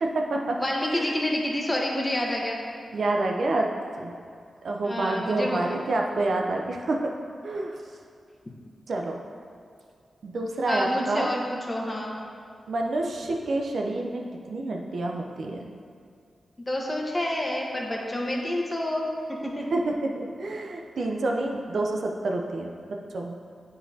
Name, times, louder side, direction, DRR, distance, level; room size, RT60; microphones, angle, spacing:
voice 1, 0.0-0.6 0.9-1.0 2.9-3.7 4.0-4.1 4.6-7.1 7.4-7.8 8.9-9.2 10.2-11.3 12.7-15.7 19.7-20.1 20.4-22.7 23.1-23.4, right 2 dB, 70° right, 1 dB, 0.6 m, -28 dB
voice 2, 0.6-2.6 4.8-5.7 10.6-12.2 16.7-19.1 19.4-19.6, left 1 dB, 25° left, -1 dB, 1.2 m, -28 dB
9.3 x 4.0 x 2.8 m, 2.4 s
cardioid pair, 45°, 0 cm